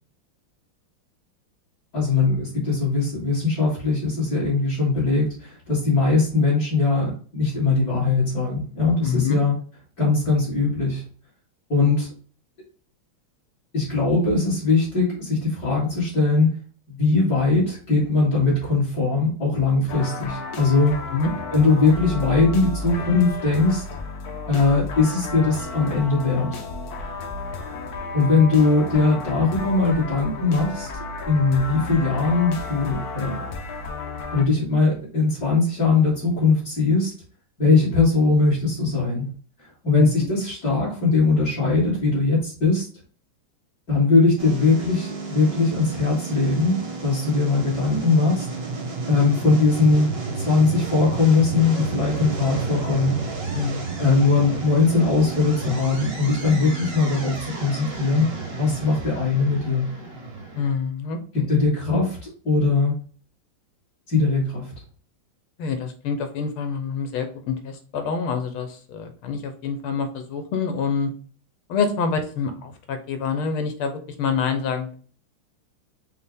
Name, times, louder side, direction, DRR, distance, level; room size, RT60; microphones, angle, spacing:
voice 1, 1.9-9.5 10.0-11.0 11.7-12.1 13.7-16.5 16.9-20.9 21.5-23.8 24.5-26.6 28.1-30.9 31.3-33.5 34.3-37.1 37.6-39.3 39.6-42.9 43.9-48.5 49.1-50.1 50.5-53.2 54.0-58.3 58.6-59.9 61.3-63.0 64.1-64.7, left 3 dB, 45° left, -8 dB, 2.1 m, -20 dB
voice 2, 9.0-9.4 21.1-21.3 39.9-40.3 53.5-53.9 60.5-61.6 65.6-71.1 71.7-74.9, left 5 dB, 85° left, 7 dB, 1.6 m, -27 dB
sound 1, 19.9-34.4, left 3 dB, 65° left, 1.0 m, -33 dB
sound 2, 44.4-60.7, right 3 dB, 55° right, 0.6 m, -32 dB
5.5 x 2.2 x 3.5 m, 0.42 s
omnidirectional pair, 2.4 m